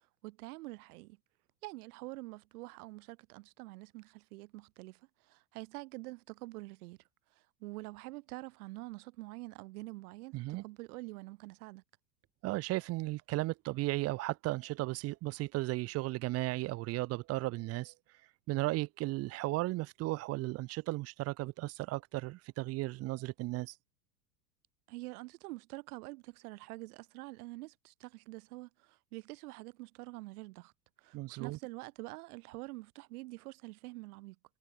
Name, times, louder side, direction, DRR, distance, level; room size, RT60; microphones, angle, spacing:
voice 1, 0.2-1.2 1.6-7.0 7.3-11.8 24.9-30.7 31.0-34.4, right 22 dB, 60° right, 7.8 m, -46 dB
voice 2, 10.3-10.6 12.4-17.9 18.5-23.7 31.1-31.6, right 19 dB, 30° right, 0.8 m, -35 dB
supercardioid pair, 145°, 50 cm